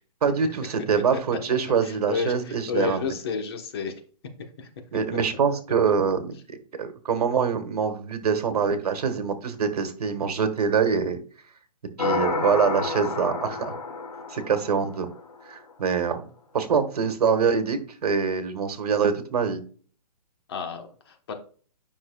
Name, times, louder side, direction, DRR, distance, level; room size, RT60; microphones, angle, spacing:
voice 1, 0.2-3.1 4.9-11.2 12.0-13.8 14.3-15.1 15.4-16.3 16.5-19.6, right 6 dB, 65° right, 8 dB, 1.5 m, -24 dB
voice 2, 1.8-3.9 4.6-4.7 20.5-21.3, left 6 dB, 35° left, 5 dB, 1.1 m, -31 dB
sound 1, 12.0-15.4, left 4 dB, 75° left, 2.1 m, -30 dB
9.6 x 5.6 x 2.3 m, 0.42 s
hypercardioid pair, 165°, 21 cm